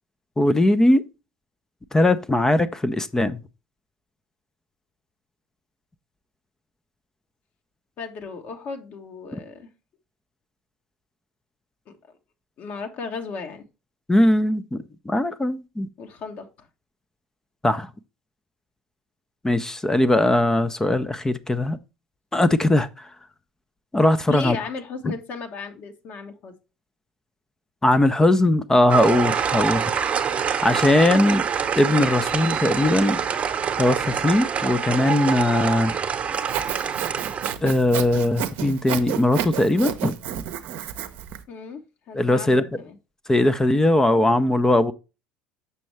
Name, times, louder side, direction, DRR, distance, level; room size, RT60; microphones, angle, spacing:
voice 1, 0.4-1.0 1.9-3.4 14.1-15.9 17.6-17.9 19.4-21.8 22.3-23.1 23.9-24.6 27.8-29.8 30.6-31.4 31.8-33.2 33.8-36.0 37.6-40.1 42.1-42.6 43.3-44.9, left 1 dB, 15° left, 0.6 m, -20 dB
voice 2, 8.0-9.7 11.9-12.0 12.6-13.6 16.0-16.7 24.3-26.5 41.5-43.0, left 5 dB, 50° left, 1.3 m, -35 dB
sound 1, 28.9-37.5, right 7 dB, 35° right, 1.0 m, -25 dB
Sawing, 36.3-41.4, right 10 dB, 55° right, 0.7 m, -31 dB
6.9 x 6.1 x 3.2 m
figure-of-eight pair, 65°, 4 cm